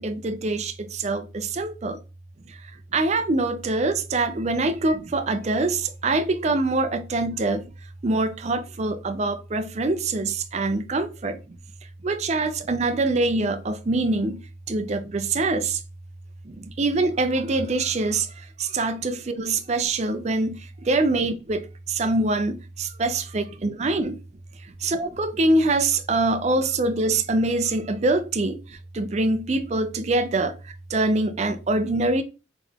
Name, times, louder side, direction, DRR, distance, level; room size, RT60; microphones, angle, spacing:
voice 1, 0.0-2.0 2.5-7.7 8.0-11.6 12.0-15.8 16.4-24.2 24.6-32.2, right 2 dB, 35° right, 0.4 m, -24 dB
3.7 x 3.4 x 3.5 m
head